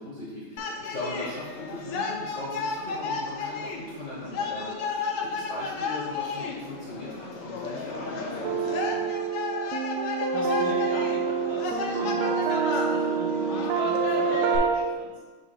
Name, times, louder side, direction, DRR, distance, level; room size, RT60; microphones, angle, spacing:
voice 1, 0.0-9.1, left 1 dB, 50° left, -5 dB, 0.9 m, -39 dB
sound 1, 0.6-14.6, left 4 dB, 90° left, 1.7 m, -33 dB
sound 2, 8.4-14.7, right 6 dB, 90° right, 1.5 m, -27 dB
voice 2, 10.0-15.2, right 2 dB, 75° right, -2 dB, 0.8 m, -39 dB
5.7 x 2.9 x 5.6 m, 1.4 s
omnidirectional pair, 2.4 m